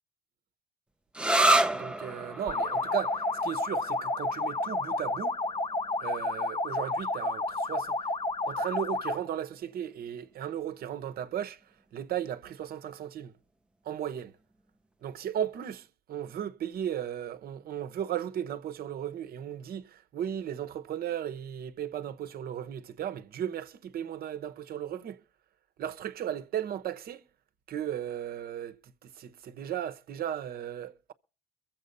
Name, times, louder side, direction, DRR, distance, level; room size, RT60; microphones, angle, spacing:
sound 1, 1.1-8.5, right 1 dB, 5° right, 0.7 m, -31 dB
voice 1, 1.7-5.4 6.0-8.1 8.4-11.6 11.9-13.3 13.8-14.3 15.0-25.2 25.8-27.2 27.7-31.1, right 10 dB, 55° right, 1.0 m, -36 dB
sound 2, 2.5-9.3, left 2 dB, 30° left, 0.9 m, -31 dB
22.5 x 7.5 x 5.4 m
cardioid pair, 105°, 18 cm